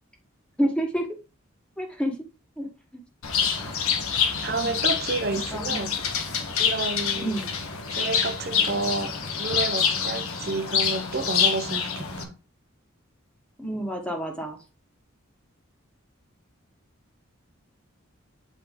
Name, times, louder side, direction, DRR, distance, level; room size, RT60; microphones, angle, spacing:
voice 1, 0.6-1.1 1.8-2.2 2.6-2.7 3.6-3.7 4.5-4.7 5.3-5.9 7.2-7.5 13.6-14.6, equal, 5° left, 1.4 m, -29 dB
Bird, 3.2-12.2, left 7 dB, 90° left, 1.3 m, -26 dB
voice 2, 4.4-6.0 6.6-7.4 7.9-12.3, right 3 dB, 45° right, 0.9 m, -30 dB
8.3 x 4.4 x 3.8 m
head